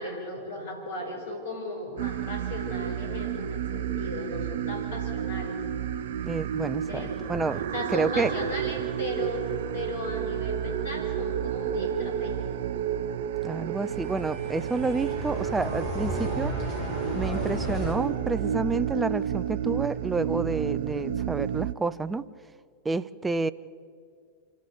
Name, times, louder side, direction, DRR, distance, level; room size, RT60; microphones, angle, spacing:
voice 1, 0.0-5.6 6.9-7.4 7.7-12.7, left 1 dB, 65° left, 2 dB, 5.3 m, -36 dB
sound 1, 2.0-21.7, right 9 dB, 60° right, 0.7 m, -31 dB
voice 2, 6.2-7.6 7.9-8.3 13.4-16.5 17.1-22.2 22.8-23.5, right 3 dB, 10° right, 15 dB, 0.6 m, -29 dB
sound 2, 13.8-17.9, left 1 dB, 40° left, 6.1 m, -34 dB
26.5 x 13.5 x 8.4 m, 2.2 s
figure-of-eight pair, 90°, 0 cm